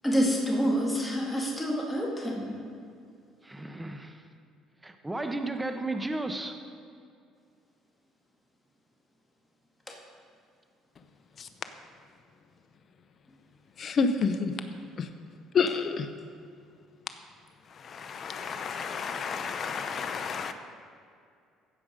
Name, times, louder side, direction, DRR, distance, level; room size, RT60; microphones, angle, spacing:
voice 1, 0.0-2.6, equal, 10° left, -2 dB, 2.1 m, -27 dB
voice 2, 3.4-4.2 4.8-6.6, right 2 dB, 10° right, 7 dB, 0.9 m, -34 dB
voice 3, 13.8-14.5 15.0-15.1 15.5-16.1 17.8-20.5, left 5 dB, 45° left, 9 dB, 0.7 m, -29 dB
15.5 x 5.2 x 5.1 m, 2.4 s
supercardioid pair, 95°, 0 cm